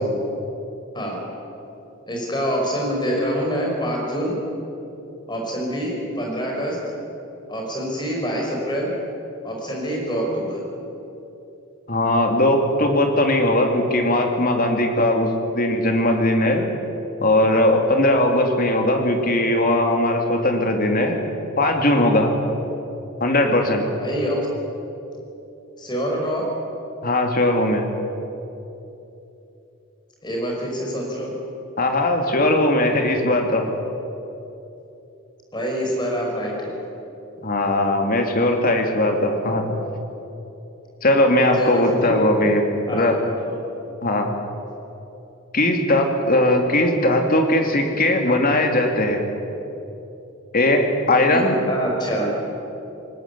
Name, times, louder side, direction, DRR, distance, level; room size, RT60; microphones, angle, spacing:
voice 1, 2.1-4.3 5.3-6.8 7.5-8.9 9.4-10.6 24.0-24.4 25.8-26.5 30.2-31.3 35.5-36.8 41.6-42.3 42.9-43.6 51.3-52.3, equal, 20° left, -1 dB, 5.4 m, -26 dB
voice 2, 11.9-16.6 17.2-21.2 21.6-22.4 23.2-23.9 27.0-27.9 31.8-33.7 37.4-39.7 41.0-42.6 42.9-43.2 44.0-44.3 45.5-49.2 50.5-51.6, left 1 dB, 45° left, 3 dB, 2.6 m, -19 dB
20.0 x 19.5 x 8.3 m, 3.0 s
head